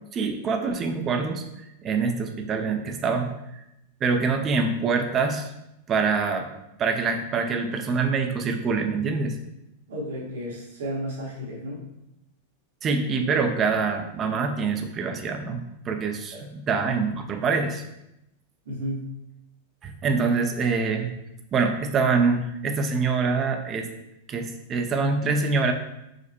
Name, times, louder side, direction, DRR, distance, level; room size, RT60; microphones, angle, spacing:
voice 1, 0.1-1.4 1.8-3.6 4.0-5.5 5.9-6.5 6.8-9.4 12.8-17.8 19.8-21.2 21.5-23.9 24.3-25.7, right 4 dB, 30° right, 5 dB, 0.5 m, -25 dB
voice 2, 9.9-11.8 16.3-16.5 18.6-19.1, equal, 80° right, -4 dB, 1.5 m, -33 dB
5.0 x 2.1 x 4.3 m, 0.86 s
supercardioid pair, 135°, 0 cm